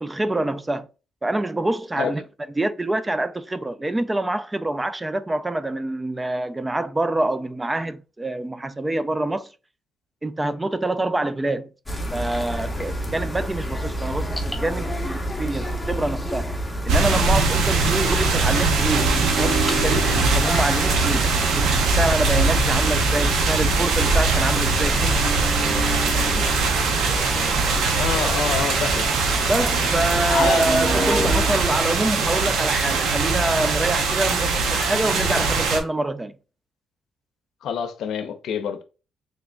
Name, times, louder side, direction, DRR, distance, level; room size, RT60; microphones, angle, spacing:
voice 1, 0.0-0.9 1.2-2.2 2.6-9.5 10.2-11.7 12.1-16.5 16.8-21.2 21.6-25.3 26.4-26.5 29.5-36.3, right 2 dB, 15° right, 0.3 m, -26 dB
sound 1, 11.9-31.6, equal, 5° left, 0.9 m, -29 dB
sound 2, 16.9-35.8, right 4 dB, 85° right, 0.7 m, -21 dB
sound 3, 18.9-23.5 25.1-29.3 30.6-31.4, right 2 dB, 35° right, 0.9 m, -32 dB
voice 2, 27.9-29.1 30.3-30.7 37.6-38.8, left 7 dB, 75° left, 0.6 m, -26 dB
3.7 x 3.4 x 2.2 m
cardioid pair, 90°, 0 cm